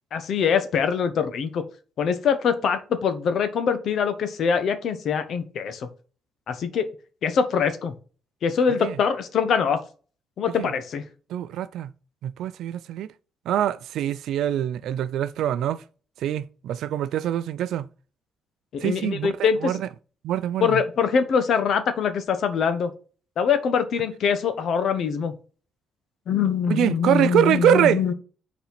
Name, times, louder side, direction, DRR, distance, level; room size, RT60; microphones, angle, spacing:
voice 1, 0.1-1.6 2.0-5.9 6.5-6.9 7.2-7.9 8.4-9.8 10.4-11.0 18.7-19.7 20.6-22.9 23.4-25.3 26.3-28.1, left 6 dB, 65° left, 1.1 m, -23 dB
voice 2, 11.3-11.9 12.2-13.1 13.5-15.8 16.2-17.9 18.8-19.9 20.2-20.8 26.7-28.0, right 11 dB, 80° right, 0.4 m, -24 dB
5.8 x 4.2 x 5.8 m
cardioid pair, 90°, 0 cm